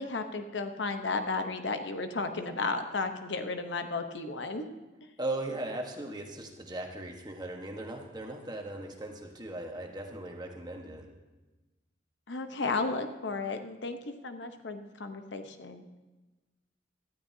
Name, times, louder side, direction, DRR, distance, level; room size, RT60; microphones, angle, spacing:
voice 1, 0.0-4.7 12.3-14.0 14.2-15.9, left 3 dB, 70° left, 7 dB, 0.9 m, -33 dB
voice 2, 5.2-11.1, right 2 dB, 20° right, 2 dB, 1.3 m, -38 dB
18.0 x 12.5 x 2.8 m, 1.2 s
head